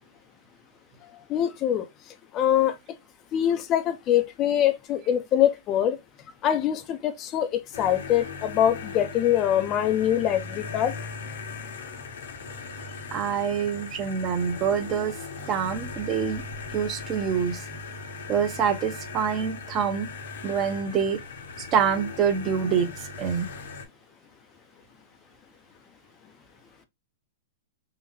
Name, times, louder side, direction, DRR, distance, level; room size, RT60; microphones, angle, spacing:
voice 1, 1.3-1.9 2.3-2.7 3.3-6.0 6.4-10.9, left 10 dB, 30° left, 0.4 m, -24 dB
sound 1, 7.7-23.9, left 4 dB, 75° left, 1.1 m, -38 dB
voice 2, 13.1-15.2 15.5-16.4 16.7-17.6 18.3-20.1 20.4-21.2 21.7-23.5, right 7 dB, 30° right, 0.6 m, -26 dB
3.8 x 2.1 x 2.9 m
hypercardioid pair, 145°, 0 cm